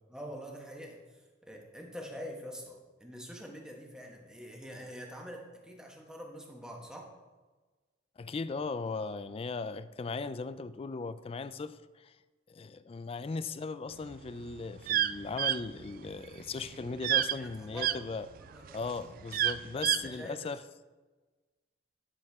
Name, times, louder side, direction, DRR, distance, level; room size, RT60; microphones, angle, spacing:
voice 1, 0.1-7.1 16.9-17.0 17.3-18.0 18.4-18.9 19.7-20.5, equal, 5° right, 1.2 m, -45 dB
voice 2, 8.2-12.1 12.5-18.3 18.7-20.6, left 4 dB, 30° left, 0.3 m, -38 dB
sound 1, 14.1-18.0 18.5-20.1, right 11 dB, 50° right, 0.3 m, -29 dB
11.0 x 6.7 x 3.5 m
head